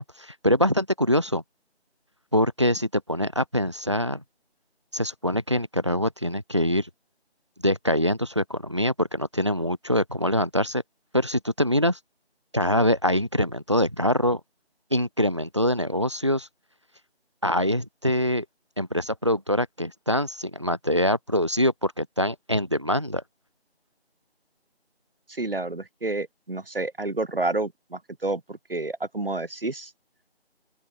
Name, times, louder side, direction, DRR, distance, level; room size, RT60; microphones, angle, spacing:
voice 1, 0.0-1.4 2.3-4.2 4.9-6.9 7.6-10.8 11.1-12.0 12.5-14.4 14.9-16.5 17.4-18.4 18.8-23.2, equal, 25° right, 0.8 m, -24 dB
voice 2, 25.4-29.9, right 2 dB, 60° right, 2.6 m, -29 dB
open air
figure-of-eight pair, 170°, 33 cm